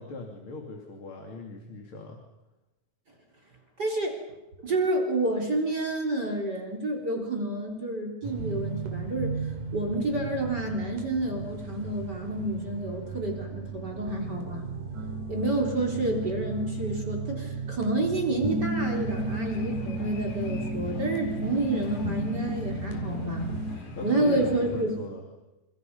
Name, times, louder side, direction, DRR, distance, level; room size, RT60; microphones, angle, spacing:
voice 1, 0.0-2.2 24.0-25.2, left 2 dB, 40° left, 2 dB, 3.4 m, -39 dB
voice 2, 3.8-4.2 4.6-9.3 9.7-14.6 15.3-23.5 24.0-24.9, right 2 dB, 30° right, 2 dB, 4.1 m, -29 dB
sound 1, 8.2-23.8, right 3 dB, 90° right, 4.0 m, -34 dB
sound 2, 18.8-24.9, left 2 dB, 60° left, 4.6 m, -41 dB
29.5 x 27.0 x 5.5 m, 1.0 s
omnidirectional pair, 3.6 m